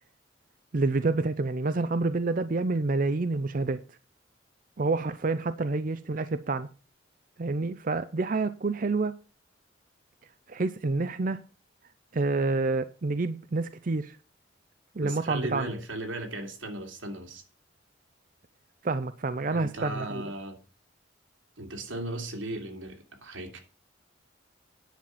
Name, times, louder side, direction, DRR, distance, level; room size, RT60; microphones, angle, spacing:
voice 1, 0.7-3.8 4.8-6.7 7.4-9.1 10.5-11.4 12.1-14.2 14.9-15.7 18.8-20.2, right 3 dB, 45° right, 0.5 m, -28 dB
voice 2, 15.0-17.4 19.5-20.6 21.6-23.6, right 1 dB, 90° right, 2.8 m, -37 dB
10.0 x 5.8 x 7.4 m
head